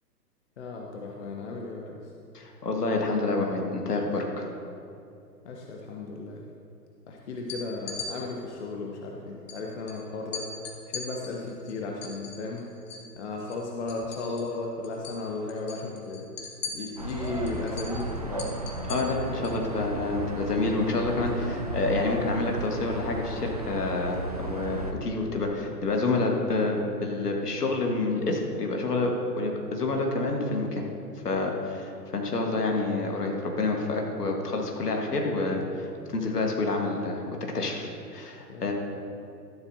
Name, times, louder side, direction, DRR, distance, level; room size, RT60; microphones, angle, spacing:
voice 1, 0.6-2.0 5.4-6.4 7.1-10.5 10.9-12.7 13.2-16.2 16.7-18.6 19.3-19.5 38.5-38.7, left 3 dB, 45° left, 0 dB, 1.0 m, -35 dB
voice 2, 2.3-4.5 18.9-30.8 31.2-35.9 36.1-37.3 37.5-38.7, left 2 dB, 65° left, 1 dB, 1.8 m, -28 dB
sound 1, 7.4-8.1 9.5-9.6 9.9-10.0 10.3-13.1 13.4-14.6 14.8-15.2 15.5-19.6, left 5 dB, 20° left, 0.7 m, -39 dB
sound 2, 17.0-24.9, right 1 dB, 25° right, 0.4 m, -35 dB
12.5 x 11.0 x 2.8 m, 2.6 s
figure-of-eight pair, 125°, 49 cm